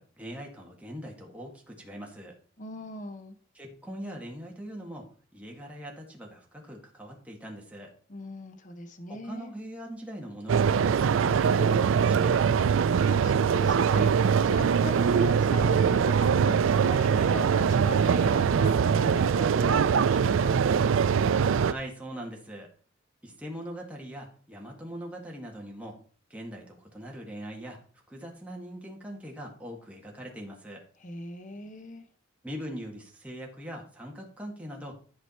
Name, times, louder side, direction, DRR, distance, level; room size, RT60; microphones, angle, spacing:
voice 1, 0.0-2.4 3.6-5.1 5.3-7.9 9.1-12.7 21.6-22.7 23.2-26.0 26.3-27.8 28.1-30.8 32.4-35.0, equal, 5° right, -1 dB, 1.9 m, -41 dB
voice 2, 2.6-3.3 8.1-9.5 12.9-20.7 31.0-32.1, left 2 dB, 40° left, 8 dB, 0.9 m, -40 dB
sound 1, 10.5-21.7, right 6 dB, 75° right, 0.4 m, -23 dB
11.5 x 5.0 x 4.3 m, 0.42 s
head